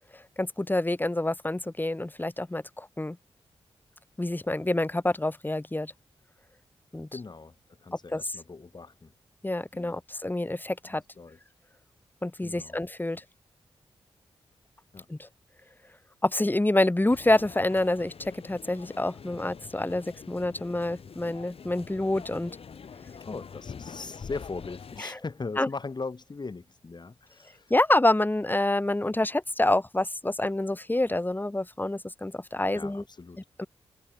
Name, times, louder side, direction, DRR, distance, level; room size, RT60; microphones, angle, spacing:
voice 1, 0.1-3.2 4.2-5.9 6.9-7.1 8.1-8.2 9.4-11.0 12.2-13.2 15.1-15.3 16.2-22.6 25.0-25.2 25.6-25.7 27.7-33.0 33.6-33.7, left 1 dB, 20° left, 4.3 m, -27 dB
voice 2, 7.1-7.6 7.8-9.1 9.7-10.0 10.8-11.4 12.4-12.8 14.9-15.1 23.2-27.7 32.7-33.4, left 4 dB, 45° left, 5.6 m, -39 dB
sound 1, 17.1-25.0, left 6 dB, 70° left, 4.3 m, -45 dB
cardioid pair, 55°, 10 cm